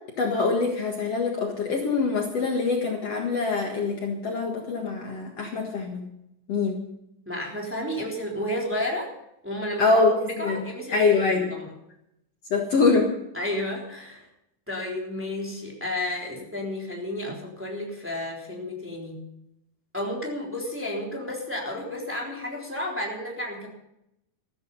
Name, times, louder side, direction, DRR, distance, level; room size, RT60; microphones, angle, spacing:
voice 1, 0.2-6.1 6.5-6.8 9.8-10.6 10.9-11.5 12.5-13.1, left 4 dB, 50° left, 1 dB, 2.5 m, -24 dB
voice 2, 7.2-9.1 9.4-11.7 13.3-14.3 14.7-19.2 19.9-23.7, left 1 dB, 5° right, -2 dB, 3.2 m, -32 dB
14.5 x 14.0 x 5.5 m, 0.82 s
omnidirectional pair, 3.9 m